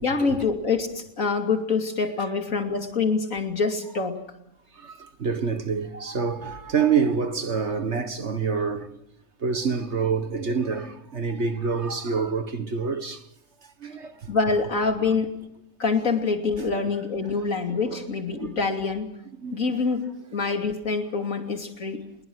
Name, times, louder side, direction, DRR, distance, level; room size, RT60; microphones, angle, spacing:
voice 1, 0.0-4.2 14.3-15.3 15.8-19.1 19.5-20.0 20.3-22.0, left 4 dB, 65° left, 3.2 m, -25 dB
voice 2, 4.8-8.9 9.4-13.2 13.8-14.2 17.9-18.0 19.4-19.9, right 5 dB, 50° right, 1.9 m, -27 dB
25.0 x 22.0 x 6.4 m
omnidirectional pair, 1.5 m